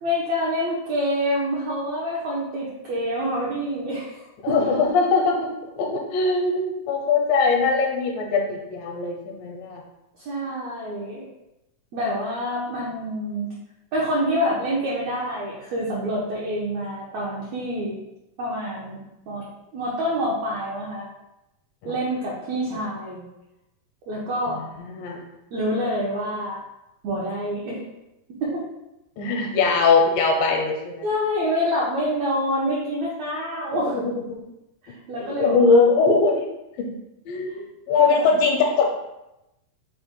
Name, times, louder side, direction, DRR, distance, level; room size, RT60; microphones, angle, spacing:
voice 1, 0.0-4.6 10.2-11.2 11.9-13.5 13.9-18.0 18.4-19.0 19.3-19.4 19.7-21.1 21.8-23.2 24.1-24.6 25.5-26.6 27.0-27.8 28.4-28.6 31.0-34.0 34.8-35.8 38.0-38.2, equal, 85° right, -5 dB, 1.5 m, -27 dB
voice 2, 4.4-5.5 5.8-9.8 21.8-21.9 22.7-22.8 24.6-25.2 29.2-31.1 33.9-34.1 35.2-36.5 36.8-36.9 37.3-38.9, left 4 dB, 80° left, 1 dB, 2.2 m, -21 dB
5.6 x 2.1 x 4.5 m, 0.93 s
omnidirectional pair, 4.2 m